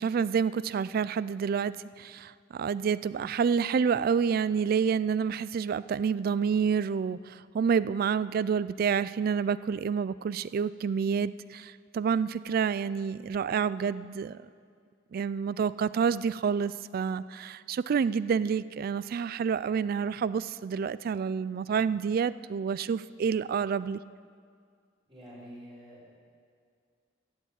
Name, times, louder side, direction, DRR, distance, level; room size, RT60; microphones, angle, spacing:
voice 1, 0.0-14.4 15.1-24.0, right 6 dB, 50° right, 17 dB, 0.3 m, -28 dB
voice 2, 25.1-26.2, equal, 25° right, -7 dB, 4.3 m, -48 dB
14.0 x 7.0 x 8.6 m, 2.1 s
head